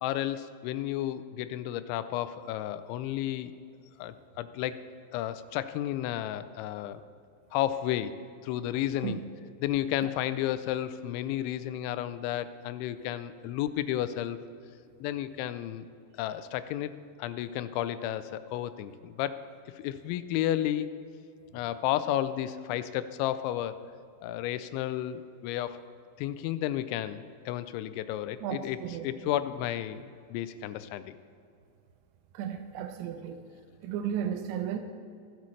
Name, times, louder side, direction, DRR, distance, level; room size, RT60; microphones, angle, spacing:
voice 1, 0.0-3.5 4.0-4.8 5.1-7.0 7.5-8.1 8.4-9.2 9.6-14.4 15.0-15.9 16.2-16.9 17.2-19.4 19.8-20.9 21.5-23.8 24.2-25.8 26.2-31.2, left 12 dB, 85° left, 13 dB, 2.9 m, -32 dB
voice 2, 28.4-29.1 32.3-33.4 33.8-34.8, right 9 dB, 85° right, 6 dB, 2.9 m, -34 dB
25.0 x 8.4 x 3.2 m, 2.5 s
omnidirectional pair, 5.3 m